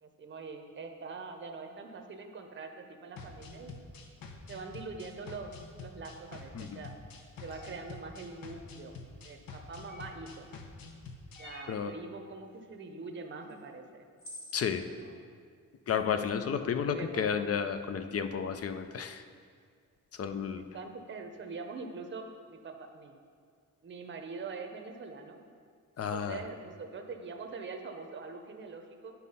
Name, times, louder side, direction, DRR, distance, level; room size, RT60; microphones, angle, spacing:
voice 1, 0.0-3.8 4.5-5.5 5.8-6.9 7.4-8.9 9.2-10.5 11.4-14.1 14.9-15.2 16.9-17.3 20.5-23.1 23.8-25.4 26.0-29.1, right 4 dB, 35° right, 4 dB, 0.7 m, -44 dB
sound 1, 3.2-11.4, left 3 dB, 90° left, 0.9 m, -47 dB
sound 2, 7.5-7.8 9.9-10.3 11.3-11.8 13.5-13.6 14.2-14.6, left 1 dB, 60° left, 1.7 m, -47 dB
voice 2, 14.5-14.9 15.9-19.2 20.2-20.6 26.0-26.4, left 7 dB, 45° left, 9 dB, 0.4 m, -32 dB
9.4 x 4.2 x 5.5 m, 2.1 s
wide cardioid pair, 145°, 34 cm